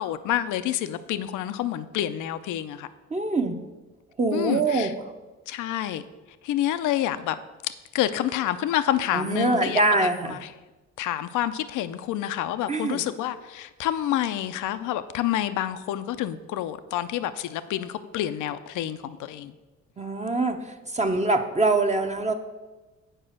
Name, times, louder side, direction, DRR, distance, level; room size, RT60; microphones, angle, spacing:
voice 1, 0.0-2.9 4.3-4.9 5.5-6.0 6.4-10.5 11.0-19.6, left 12 dB, 80° left, 0.5 m, -28 dB
voice 2, 3.1-3.6 4.2-4.9 9.1-10.4 12.7-13.0 20.0-22.3, right 2 dB, 25° right, 0.7 m, -24 dB
8.9 x 4.9 x 6.4 m
cardioid pair, 90°, 30 cm